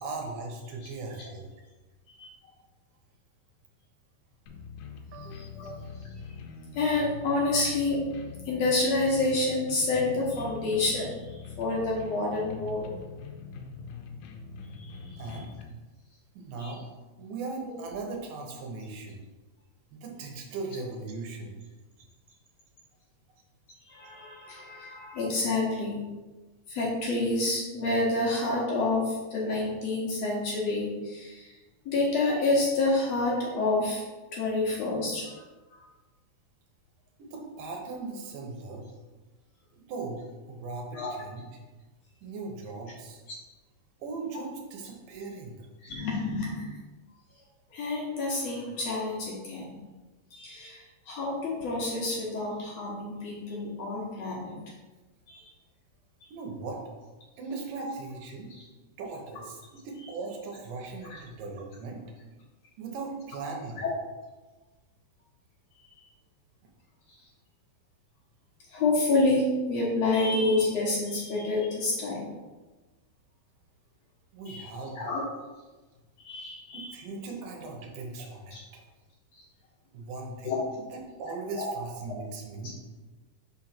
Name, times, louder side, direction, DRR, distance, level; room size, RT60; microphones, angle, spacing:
voice 1, 0.0-1.5 5.1-5.5 7.5-7.6 15.2-15.5 16.3-16.8 17.2-19.2 19.9-21.5 37.2-38.9 39.8-41.5 42.2-43.2 44.0-45.7 56.3-56.8 57.4-58.5 59.0-62.0 62.8-63.8 74.3-75.1 76.7-78.8 79.9-82.8, right 3 dB, 70° right, 1 dB, 2.5 m, -39 dB
sound 1, 4.5-15.6, left 5 dB, 80° left, 2.4 m, -43 dB
voice 2, 5.3-5.7 6.8-8.0 8.5-12.9 14.8-15.2 16.6-16.7 23.9-26.0 26.7-31.5 31.9-34.0 34.3-35.4 35.7-35.8 40.9-41.1 45.8-46.8 47.7-49.8 50.3-54.6 55.3-55.4 57.8-57.9 63.8-63.9 65.9-66.0 68.7-72.3 74.5-75.2 76.2-76.9 78.5-78.6 80.4-80.6 81.6-81.7, left 2 dB, 65° left, -4 dB, 1.7 m, -28 dB
5.7 x 3.7 x 5.8 m, 1.2 s
omnidirectional pair, 4.4 m